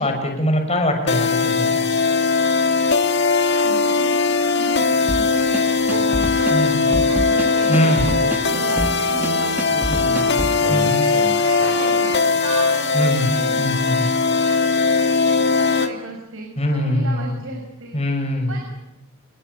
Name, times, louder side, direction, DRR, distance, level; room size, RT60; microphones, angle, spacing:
voice 1, 0.0-1.8 6.5-6.9 7.7-8.1 9.9-10.1 10.7-11.1 12.9-13.3 13.6-14.1 16.6-17.4 17.9-18.6, equal, 30° left, 4 dB, 6.5 m, -22 dB
sound 1, 1.1-15.9, left 4 dB, 50° left, 1.8 m, -19 dB
voice 2, 3.6-5.7 6.1-6.7 7.1-14.0 14.4-18.0 18.5-18.7, right 3 dB, 65° right, 2 dB, 5.4 m, -36 dB
sound 2, 5.1-10.6, equal, 10° right, 1.7 m, -28 dB
sound 3, 5.9-12.3 13.8-13.9, right 2 dB, 45° right, 3.2 m, -32 dB
29.0 x 21.5 x 8.6 m, 0.87 s
head